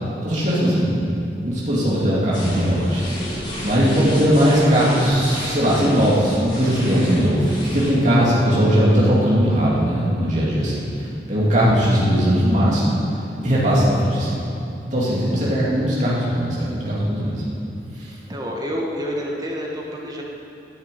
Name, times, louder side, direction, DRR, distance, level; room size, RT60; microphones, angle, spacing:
voice 1, 0.2-1.0 1.3-3.4 3.6-10.9 11.3-12.9 13.4-14.4 14.9-17.4 18.0-18.1, equal, 40° right, -7 dB, 2.6 m, -19 dB
sound 1, 2.3-7.9, left 1 dB, 25° left, 3.9 m, -32 dB
voice 2, 18.3-20.2, equal, 20° right, -2 dB, 1.5 m, -28 dB
11.0 x 8.7 x 8.4 m, 2.7 s
head